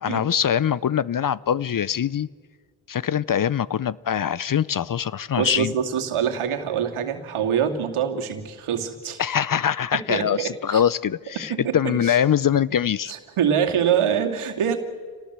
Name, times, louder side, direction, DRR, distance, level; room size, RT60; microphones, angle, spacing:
voice 1, 0.0-2.3 2.9-5.7 9.2-13.1, left 9 dB, 40° left, 21 dB, 0.6 m, -23 dB
voice 2, 5.4-9.2 9.9-10.8 11.3-12.2 13.1-14.8, right 8 dB, 80° right, 4 dB, 2.6 m, -25 dB
26.5 x 18.5 x 8.1 m, 1.5 s
cardioid pair, 65°, 49 cm